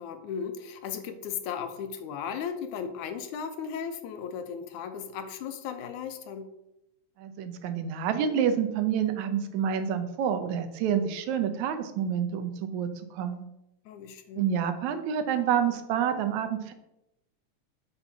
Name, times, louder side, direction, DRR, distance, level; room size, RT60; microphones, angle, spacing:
voice 1, 0.0-6.5 13.9-14.5, left 7 dB, 85° left, 8 dB, 2.3 m, -36 dB
voice 2, 7.2-13.4 14.4-16.7, right 8 dB, 80° right, 8 dB, 2.1 m, -28 dB
8.4 x 5.3 x 6.0 m, 0.87 s
omnidirectional pair, 3.4 m